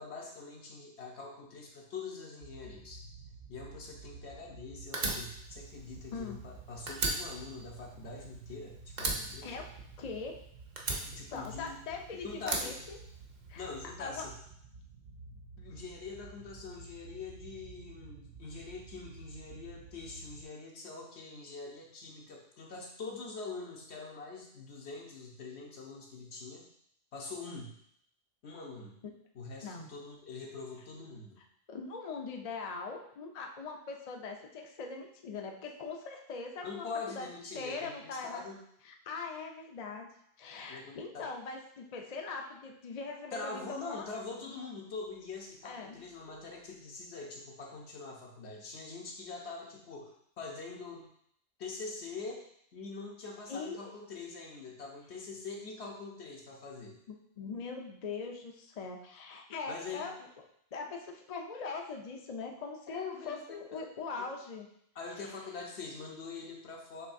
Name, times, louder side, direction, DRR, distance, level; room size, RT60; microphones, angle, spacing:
voice 1, 0.0-3.0 3.5-9.5 11.0-12.7 13.6-14.3 15.6-26.7 27.1-27.7 28.4-29.0 29.3-31.4 36.6-38.6 40.7-41.3 43.3-51.1 51.6-52.5 52.7-57.0 59.7-60.1 62.9-63.4 63.7-63.9 64.2-64.3 64.9-67.1, left 4 dB, 75° left, -1 dB, 1.2 m, -44 dB
sound 1, 2.4-20.4, right 4 dB, 90° right, 0.9 m, -52 dB
Fire, 4.9-6.6 6.9-8.6 9.0-10.3 10.8-11.9 12.4-13.6, right 2 dB, 45° right, 0.8 m, -36 dB
voice 2, 10.0-10.3 11.3-13.0 13.5-13.7 14.0-14.3 29.6-29.9 31.7-37.3 37.5-38.5 38.9-40.1 40.4-44.1 45.6-46.0 53.5-53.9 57.4-60.1 60.7-64.7 65.2-65.3, left 4 dB, 45° left, 2 dB, 0.5 m, -41 dB
6.3 x 3.2 x 2.6 m, 0.70 s
omnidirectional pair, 1.1 m